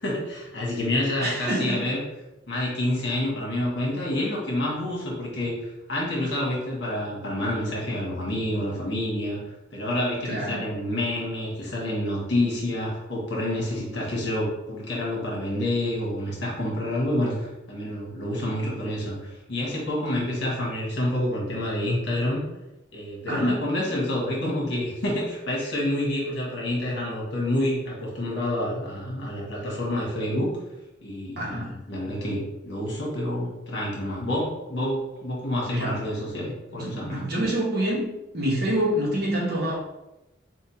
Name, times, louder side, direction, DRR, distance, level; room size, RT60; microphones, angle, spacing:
voice 1, 0.0-2.0 2.5-22.4 22.9-30.5 31.0-37.2, left 1 dB, 60° left, -4 dB, 1.4 m, -28 dB
voice 2, 1.2-1.8 10.2-10.6 23.3-23.6 31.4-31.7 35.7-36.0 36.7-38.0 38.3-39.9, right 1 dB, 50° right, -4 dB, 1.2 m, -26 dB
4.1 x 3.5 x 2.9 m, 0.94 s
head